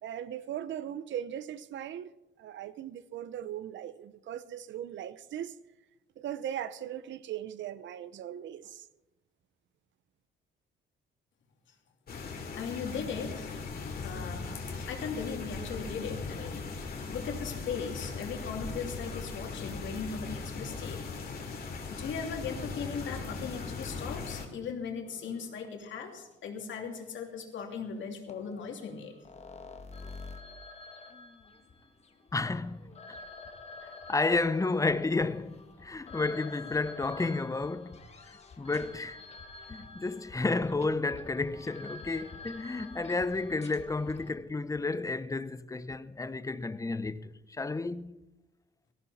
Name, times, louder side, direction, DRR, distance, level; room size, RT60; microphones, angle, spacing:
voice 1, 0.0-5.6 6.2-8.9, right 10 dB, 70° right, 0.7 m, -39 dB
sound 1, 12.1-24.5, left 4 dB, 50° left, 2.7 m, -39 dB
voice 2, 12.5-13.5 14.0-16.7 17.1-21.3 21.9-29.1, left 6 dB, 70° left, 2.8 m, -38 dB
sound 2, 25.1-25.7 27.0-27.1 28.3-44.3, left 3 dB, 35° left, 1.8 m, -48 dB
voice 3, 32.3-33.2 34.1-39.2 39.7-48.2, left 3 dB, 15° left, 0.7 m, -32 dB
18.0 x 14.5 x 4.3 m
cardioid pair, 90°, 20 cm